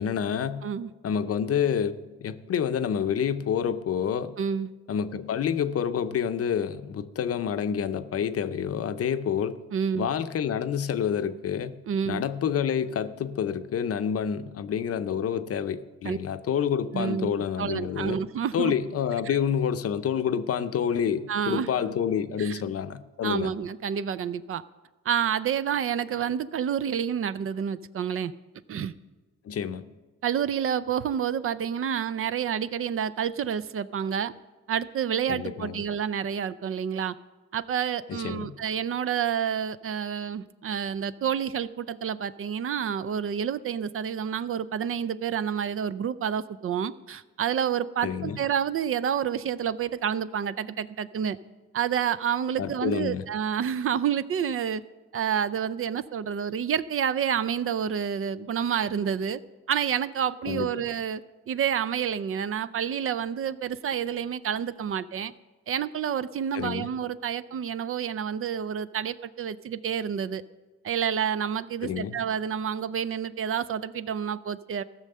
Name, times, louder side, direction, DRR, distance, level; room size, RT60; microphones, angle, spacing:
voice 1, 0.0-0.6 1.0-4.3 4.9-9.6 10.0-11.7 12.1-18.2 18.5-23.5 29.4-29.8 35.3-35.8 38.1-38.5 48.0-48.4 52.6-53.2 60.4-60.7 66.5-66.9 71.8-72.2, left 8 dB, 50° left, 11 dB, 0.7 m, -28 dB
voice 2, 4.4-4.7 9.7-10.1 11.9-12.2 16.0-16.2 16.9-18.7 19.3-19.4 21.3-21.7 22.4-22.6 23.2-24.6 25.1-28.3 28.7-28.9 30.2-34.3 34.7-37.1 37.5-51.4 51.7-54.8 55.1-59.4 59.7-61.2 61.5-65.3 65.7-70.4 70.8-74.8, right 8 dB, 45° right, 15 dB, 0.5 m, -29 dB
15.0 x 6.3 x 6.7 m, 1.2 s
cardioid pair, 90°, 30 cm